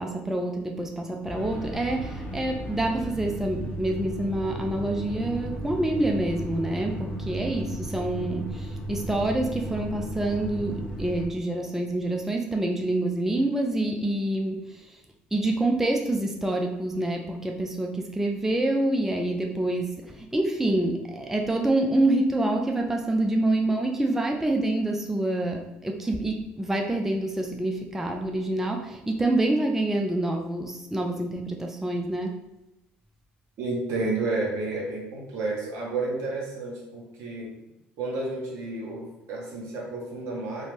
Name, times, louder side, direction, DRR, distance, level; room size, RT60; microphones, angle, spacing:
voice 1, 0.0-15.0 15.3-32.4, right 1 dB, 5° right, 2 dB, 0.3 m, -27 dB
sound 1, 1.2-11.3, right 1 dB, 30° left, 0.8 m, -35 dB
voice 2, 33.6-37.6 38.0-40.7, right 3 dB, 65° right, -2 dB, 0.9 m, -31 dB
2.7 x 2.0 x 3.2 m, 0.91 s
hypercardioid pair, 70°, 5 cm